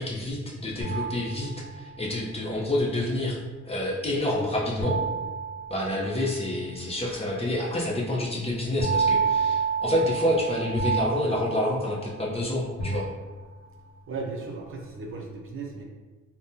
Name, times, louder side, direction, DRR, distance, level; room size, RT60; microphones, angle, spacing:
voice 1, 0.0-3.4 3.6-5.0 5.7-13.0, left 1 dB, 20° left, -3 dB, 0.7 m, -28 dB
sound 1, 0.8-2.0 4.8-6.4 8.8-12.4 12.8-13.7, right 5 dB, 70° left, 0.8 m, -29 dB
voice 2, 9.0-9.5 14.1-15.8, right 3 dB, 45° right, 0 dB, 0.5 m, -37 dB
3.4 x 2.2 x 2.7 m, 1.3 s
cardioid pair, 90°, 30 cm